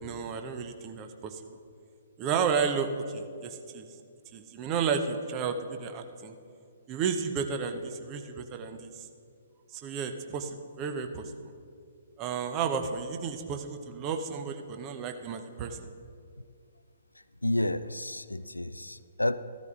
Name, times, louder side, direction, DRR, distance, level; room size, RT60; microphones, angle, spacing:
voice 1, 0.0-1.4 2.2-3.9 4.3-6.3 6.9-9.1 9.7-11.5 12.2-15.8, right 6 dB, 25° right, 6 dB, 0.8 m, -32 dB
voice 2, 17.4-19.4, left 1 dB, 80° left, 14 dB, 0.4 m, -30 dB
15.0 x 13.5 x 2.4 m, 2.4 s
figure-of-eight pair, 125°, 0 cm